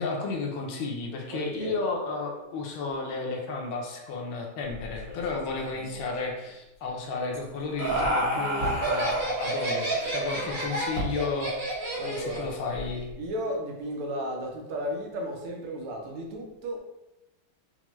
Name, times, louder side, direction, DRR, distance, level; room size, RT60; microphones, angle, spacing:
voice 1, 0.0-13.1, left 3 dB, 75° left, 0 dB, 1.4 m, -33 dB
voice 2, 1.3-1.8 10.3-10.7 11.9-12.5 13.2-16.8, equal, 85° right, 1 dB, 1.6 m, -34 dB
sound 1, 4.6-7.3 7.7-11.7 12.0-13.3, right 1 dB, 55° left, 0.8 m, -41 dB
Laughter, 7.3-12.5, right 1 dB, 50° right, 1.2 m, -29 dB
5.7 x 2.1 x 3.0 m, 0.96 s
omnidirectional pair, 2.4 m